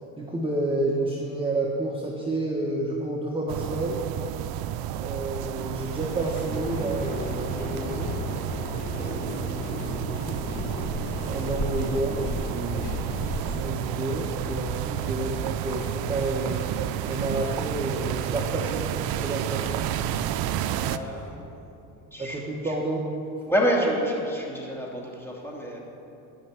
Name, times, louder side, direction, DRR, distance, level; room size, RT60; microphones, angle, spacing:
voice 1, 0.2-4.0 4.9-8.1 8.9-12.9 13.4-16.6 17.0-19.9 22.2-23.1, right 2 dB, 15° right, -2 dB, 1.4 m, -30 dB
sound 1, 3.5-21.0, right 12 dB, 65° right, 0.6 m, -31 dB
sound 2, 5.9-21.3, left 2 dB, 65° left, 2.5 m, -42 dB
sound 3, 6.5-13.6, left 3 dB, 20° left, 0.7 m, -35 dB
voice 2, 20.8-22.7 23.4-25.8, equal, 5° left, -3 dB, 3.0 m, -29 dB
13.0 x 5.9 x 9.3 m, 2.8 s
supercardioid pair, 95°, 39 cm